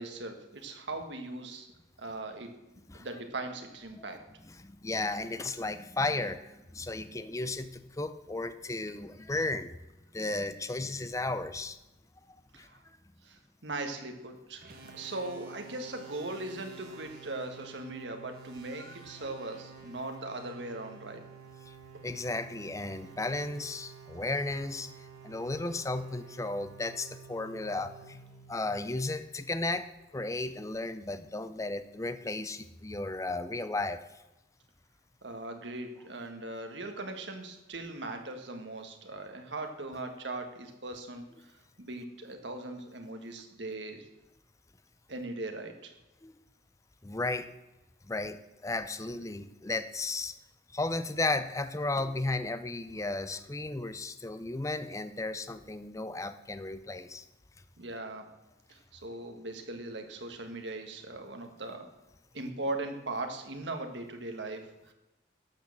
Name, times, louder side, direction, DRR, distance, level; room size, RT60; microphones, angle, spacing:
voice 1, 0.0-1.7 2.0-2.5 2.9-4.2 12.5-12.8 13.2-21.2 35.2-44.1 45.1-45.9 57.8-58.2 58.7-61.9 62.3-64.9, right 2 dB, 70° right, 5 dB, 1.7 m, -39 dB
voice 2, 4.6-9.8 10.1-11.8 12.5-12.7 18.8-19.0 21.7-21.8 22.0-24.9 25.2-28.2 28.5-34.0 46.2-46.3 47.0-47.6 48.1-50.4 50.7-57.2, left 2 dB, 15° left, 12 dB, 0.5 m, -34 dB
sound 1, 14.6-29.2, right 5 dB, 55° right, 1.8 m, -51 dB
12.0 x 6.5 x 7.2 m, 1.0 s
head